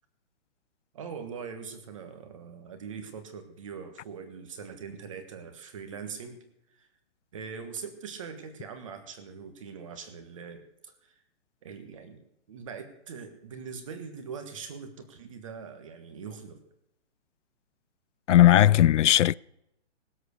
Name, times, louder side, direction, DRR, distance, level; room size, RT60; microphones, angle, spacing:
voice 1, 0.9-6.4 6.7-6.9 7.3-11.2 11.6-16.6, right 6 dB, 25° right, 1.4 m, -42 dB
voice 2, 18.3-19.3, left 13 dB, 85° left, 0.5 m, -18 dB
19.0 x 8.0 x 6.5 m
hypercardioid pair, 180°, 35 cm